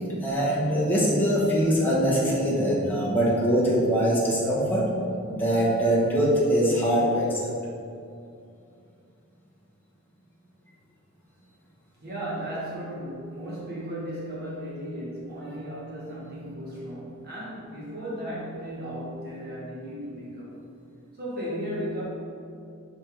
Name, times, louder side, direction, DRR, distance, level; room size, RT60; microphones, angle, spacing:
voice 1, 0.2-4.9 5.3-7.5, equal, 10° left, -7 dB, 1.1 m, -23 dB
voice 2, 12.0-20.6 21.2-22.0, equal, 45° right, -7 dB, 1.4 m, -35 dB
5.2 x 4.2 x 4.5 m, 2.5 s
head